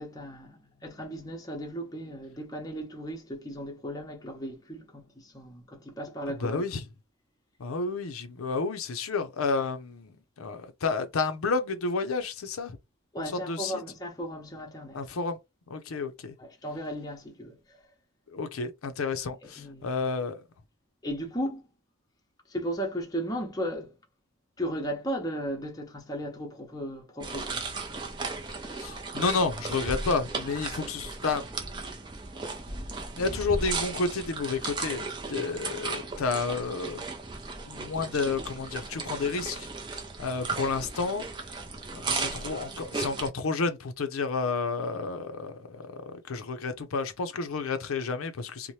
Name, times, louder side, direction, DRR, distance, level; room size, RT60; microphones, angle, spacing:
voice 1, 0.0-6.6 13.1-15.0 16.4-17.8 19.6-19.9 21.0-21.6 22.5-23.9 24.6-27.6 42.1-42.4, equal, 15° left, 0.7 m, -36 dB
voice 2, 6.4-6.8 7.6-10.1 10.4-12.8 13.5-13.8 14.9-15.4 15.7-16.3 18.3-20.4 28.7-31.5 33.2-37.0 37.7-39.7 40.2-41.2 41.9-48.7, left 4 dB, 90° left, 0.5 m, -31 dB
sound 1, 27.2-43.3, right 3 dB, 20° right, 0.4 m, -36 dB
2.7 x 2.1 x 3.0 m
head